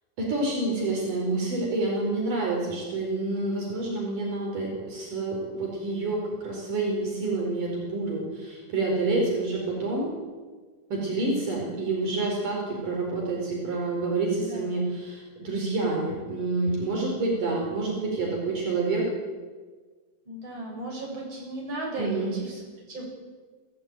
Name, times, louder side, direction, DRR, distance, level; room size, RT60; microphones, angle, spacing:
voice 1, 0.2-10.1 10.9-19.0 22.0-22.3, right 2 dB, 70° right, -1 dB, 6.4 m, -28 dB
voice 2, 14.3-14.7 20.3-23.0, right 2 dB, 35° right, -2 dB, 8.1 m, -36 dB
27.5 x 16.5 x 9.1 m, 1.4 s
omnidirectional pair, 3.9 m